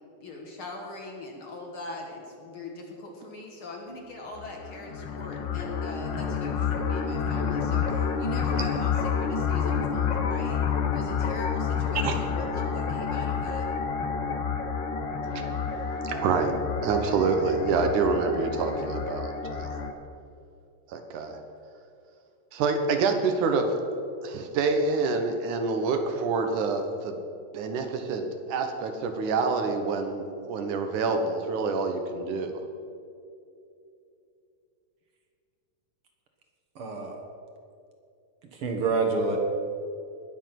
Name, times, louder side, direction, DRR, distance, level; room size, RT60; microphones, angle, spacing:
voice 1, 0.2-13.7, left 2 dB, 50° left, 0 dB, 2.2 m, -41 dB
sound 1, 4.3-19.9, left 6 dB, 70° left, 1.0 m, -29 dB
voice 2, 15.7-16.5 16.8-19.7 20.9-21.4 22.5-23.8 24.2-27.2 27.5-32.6, right 4 dB, 85° right, 6 dB, 2.7 m, -27 dB
voice 3, 36.8-37.2 38.5-39.4, right 4 dB, 55° right, 2 dB, 2.0 m, -27 dB
20.5 x 7.5 x 5.9 m, 2.6 s
omnidirectional pair, 3.4 m